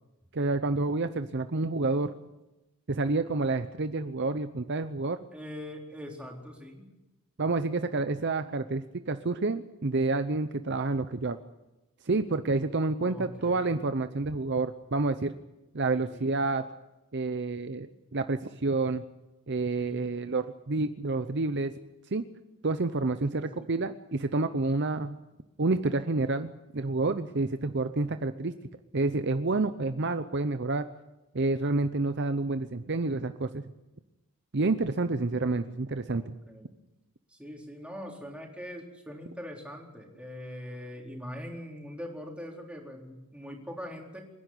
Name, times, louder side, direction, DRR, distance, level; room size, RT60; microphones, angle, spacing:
voice 1, 0.3-2.1 2.9-5.2 7.4-11.4 12.0-15.3 15.7-16.6 17.1-19.0 19.5-21.7 22.1-22.2 22.6-25.2 25.6-28.6 28.9-30.9 31.3-33.7 34.5-36.3, right 3 dB, 50° right, 10 dB, 0.7 m, -29 dB
voice 2, 5.3-6.9 13.0-13.7 15.8-16.3 19.8-20.1 23.3-23.7 36.0-36.7 37.3-44.2, equal, 5° right, -1 dB, 4.1 m, -42 dB
27.5 x 11.0 x 9.6 m, 1.0 s
head